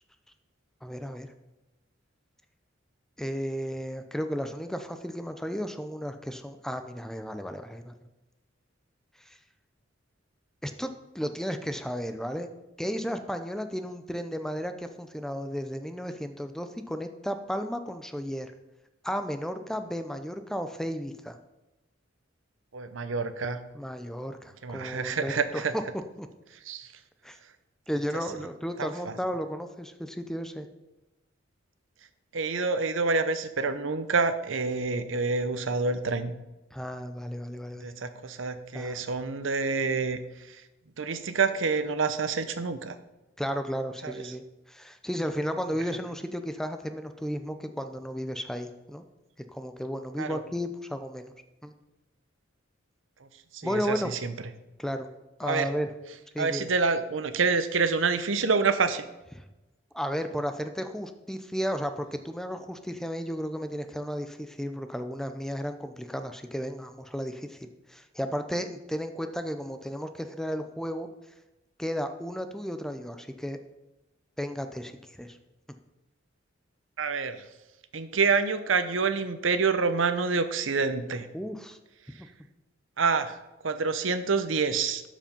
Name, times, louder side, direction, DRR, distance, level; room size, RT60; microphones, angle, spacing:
voice 1, 0.8-1.3 3.2-7.9 9.2-9.4 10.6-12.5 12.8-18.5 19.0-21.4 23.7-25.8 26.2-26.3 27.2-27.4 27.9-30.7 36.7-37.9 38.7-39.0 43.4-49.0 49.5-51.3 51.6-51.7 53.6-54.1 54.8-55.1 55.4-55.9 56.3-56.7 59.4-59.5 59.9-71.1 71.8-73.6 74.4-75.4 81.3-81.8 82.2-82.3, equal, 5° left, 8 dB, 0.5 m, -34 dB
voice 2, 22.7-23.6 24.6-25.7 26.7-26.9 28.8-29.1 32.3-36.3 37.8-40.2 40.5-40.6 41.0-43.0 44.0-44.2 50.2-50.4 53.5-54.3 55.4-55.7 56.4-59.1 77.0-77.4 77.9-81.3 83.0-83.4 83.6-85.0, right 4 dB, 75° right, 10 dB, 0.8 m, -27 dB
12.5 x 5.1 x 5.3 m, 1.0 s
head